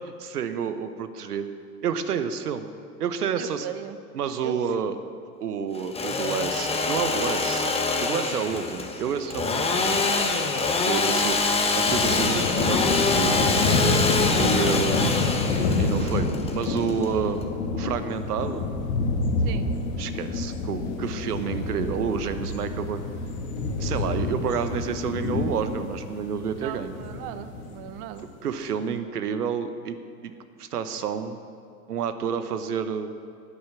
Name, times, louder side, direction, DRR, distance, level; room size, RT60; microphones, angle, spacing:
voice 1, 0.0-1.5 1.8-2.7 3.0-3.7 4.1-5.0 5.4-7.7 8.0-10.0 10.8-13.5 14.4-15.2 15.8-17.4 17.7-18.7 20.0-23.0 23.8-27.0 28.4-30.0 30.2-30.3 30.6-31.4 31.9-33.1, right 7 dB, 80° right, 10 dB, 1.0 m, -29 dB
voice 2, 3.4-4.0 4.4-4.5 19.4-19.7 26.6-28.3, right 12 dB, 40° right, 12 dB, 0.8 m, -38 dB
Engine / Sawing, 5.7-17.4, left 3 dB, 15° left, 1.0 m, -25 dB
sound 1, 11.9-27.9, left 3 dB, 65° left, 1.8 m, -28 dB
sound 2, 11.9-17.5, left 4 dB, 30° left, 1.3 m, -41 dB
9.5 x 9.2 x 7.3 m, 2.3 s
hypercardioid pair, 100°, 45 cm